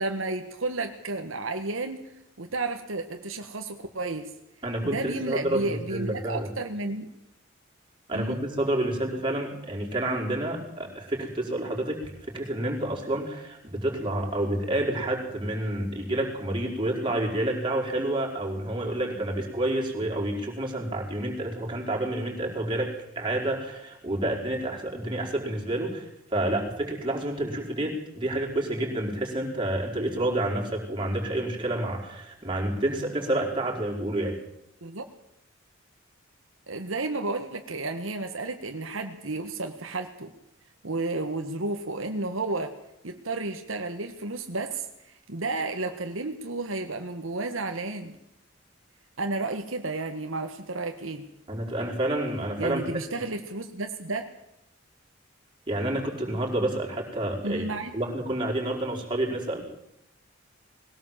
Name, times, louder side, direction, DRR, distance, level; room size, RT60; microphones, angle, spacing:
voice 1, 0.0-2.0 2.4-4.3 4.8-7.1 8.1-8.4 34.8-35.1 36.7-40.3 40.8-42.7 43.0-48.2 49.2-51.2 52.6-54.3 57.4-57.9, right 2 dB, 75° right, 5 dB, 1.6 m, -32 dB
voice 2, 4.6-6.5 8.1-34.3 51.5-52.8 55.7-57.6 57.9-59.6, right 1 dB, 25° right, -1 dB, 4.8 m, -29 dB
21.0 x 17.5 x 7.5 m, 0.82 s
head